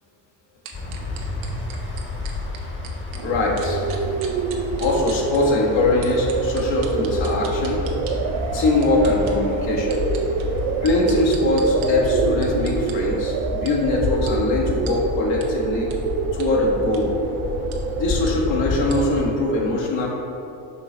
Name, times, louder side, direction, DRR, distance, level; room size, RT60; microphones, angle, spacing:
sound 1, 0.7-19.2, left 3 dB, 25° left, 1.1 m, -30 dB
sound 2, 0.7-3.2 3.6-5.4 6.0-8.1 8.6-9.3 9.8-11.9 12.4-12.9 13.7-13.8 14.3-14.4 14.9-15.0 15.4-15.5 15.9-16.0 16.4-16.5 16.8-17.0 17.7-17.8 18.3-18.4 18.9-19.0, right 8 dB, 75° right, 0.9 m, -38 dB
voice 1, 3.2-3.8 4.8-7.8 8.5-10.0 10.8-15.9 16.3-17.2 18.0-20.1, left 2 dB, 65° left, -2 dB, 1.4 m, -22 dB
sound 3, 3.2-18.3, right 6 dB, 60° right, 0.5 m, -27 dB
5.8 x 3.2 x 5.0 m, 2.8 s
supercardioid pair, 85°, 47 cm